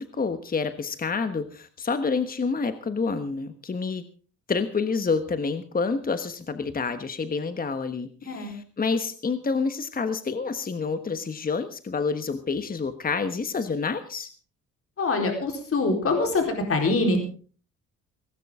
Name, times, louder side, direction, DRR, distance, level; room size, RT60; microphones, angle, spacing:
voice 1, 0.0-4.0 4.5-14.3, left 4 dB, 30° left, 10 dB, 1.3 m, -28 dB
voice 2, 15.0-16.4 16.7-17.2, left 3 dB, 50° left, 3 dB, 4.3 m, -24 dB
18.0 x 16.0 x 3.7 m, 0.40 s
cardioid pair, 90°, 30 cm